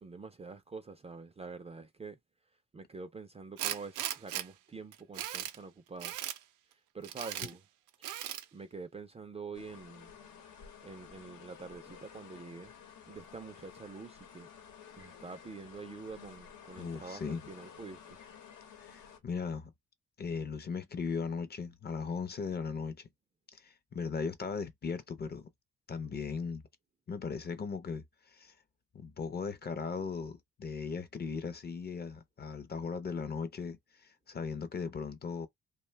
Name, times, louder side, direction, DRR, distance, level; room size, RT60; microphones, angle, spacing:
voice 1, 0.0-2.2 2.7-6.3 6.9-7.6 8.5-10.1 10.8-12.7 13.1-14.5 15.0-17.2 17.5-18.2, right 4 dB, 20° right, 0.4 m, -46 dB
Tools, 3.6-4.4 4.9-5.6 6.0-6.4 7.0-7.5 8.0-8.4, right 12 dB, 85° right, 0.5 m, -37 dB
sound 1, 9.5-19.2, left 7 dB, 85° left, 1.0 m, -53 dB
voice 2, 16.8-17.4 18.8-19.7 20.2-23.1 23.5-25.5 25.9-26.6 27.1-28.5 28.9-35.5, left 5 dB, 35° left, 0.6 m, -38 dB
2.5 x 2.2 x 3.2 m
cardioid pair, 90°, 30 cm